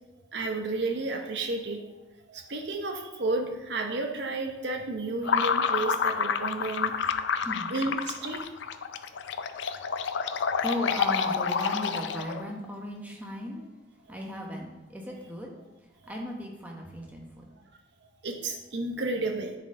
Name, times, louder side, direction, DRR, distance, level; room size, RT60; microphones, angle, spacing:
voice 1, 0.3-1.8 2.3-6.9 7.7-8.4 18.2-19.6, right 2 dB, 60° right, 4 dB, 0.8 m, -31 dB
sound 1, 5.2-12.5, left 6 dB, 70° left, 0.4 m, -29 dB
voice 2, 7.3-7.7 8.8-13.6 14.1-15.6 16.1-17.5, equal, 10° right, -1 dB, 1.0 m, -37 dB
10.0 x 4.2 x 3.8 m, 1.1 s
head